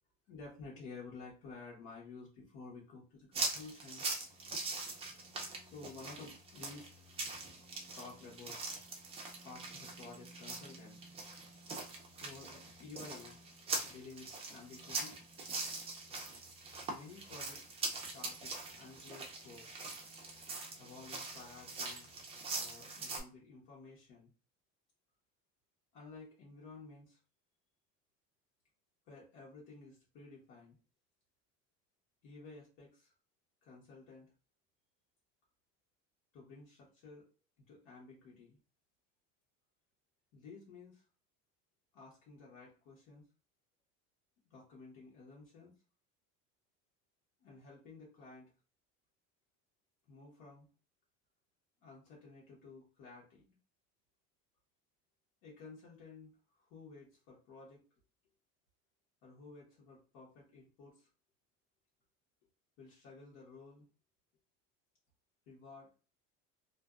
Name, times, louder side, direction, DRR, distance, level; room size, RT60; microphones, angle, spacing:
voice 1, 0.3-4.1 5.6-6.9 7.9-8.6 9.4-11.0 12.2-13.5 13.9-15.2 16.9-17.8 18.1-19.7 20.8-22.1 22.5-24.3 25.9-27.2 29.1-30.8 32.2-33.1 33.6-34.3 36.3-37.3 37.7-38.6 40.3-41.0 41.9-43.2 44.5-45.7 47.4-48.5 50.1-50.7 51.8-53.6 55.4-57.8 59.2-61.1 62.8-63.8 65.5-65.9, left 4 dB, 75° left, -5 dB, 1.1 m, -53 dB
sound 1, 3.3-23.2, right 3 dB, 20° right, 0.4 m, -43 dB
2.5 x 2.2 x 2.3 m, 0.34 s
cardioid pair, 150°, 30 cm